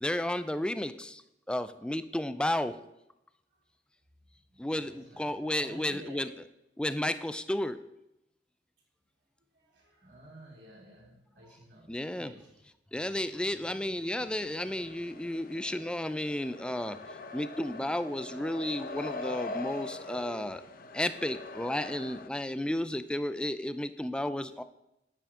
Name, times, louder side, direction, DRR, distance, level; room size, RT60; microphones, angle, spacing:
voice 1, 0.0-1.2 1.5-2.8 4.6-6.3 6.8-7.8 11.9-12.3 12.9-17.0 17.3-20.6 20.9-24.6, left 1 dB, 5° left, 12 dB, 0.3 m, -32 dB
voice 2, 4.5-6.4 9.5-12.5, right 1 dB, 75° right, -4 dB, 3.1 m, -52 dB
sound 1, 14.2-22.3, left 3 dB, 50° left, 0.7 m, -42 dB
8.8 x 8.5 x 3.7 m, 0.86 s
head